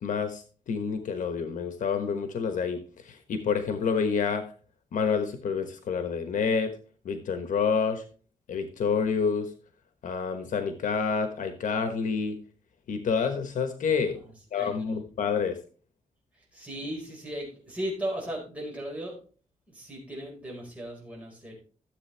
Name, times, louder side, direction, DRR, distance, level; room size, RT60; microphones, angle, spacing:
voice 1, 0.0-2.8 3.0-4.4 4.9-6.7 7.0-8.0 8.5-9.5 10.0-12.4 12.9-14.2 14.5-15.6, left 5 dB, 80° left, 8 dB, 1.2 m, -28 dB
voice 2, 13.9-14.2 14.5-14.9 16.5-19.2 19.7-21.5, right 1 dB, 10° right, -4 dB, 4.9 m, -37 dB
13.5 x 7.8 x 3.4 m, 0.39 s
wide cardioid pair, 125°, 13 cm